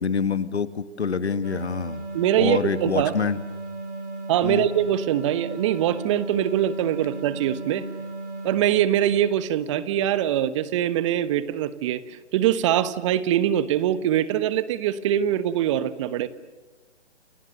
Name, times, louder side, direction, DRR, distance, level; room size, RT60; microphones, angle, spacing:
voice 1, 0.0-2.0 2.4-3.4 4.4-4.7, left 5 dB, 70° left, 13 dB, 1.9 m, -26 dB
sound 1, 1.4-9.6, right 2 dB, 80° right, 5.3 m, -36 dB
voice 2, 2.1-3.2 4.3-7.9 8.4-16.3, right 11 dB, 25° right, 15 dB, 1.2 m, -23 dB
29.5 x 28.0 x 6.7 m, 1.2 s
figure-of-eight pair, 140°, 34 cm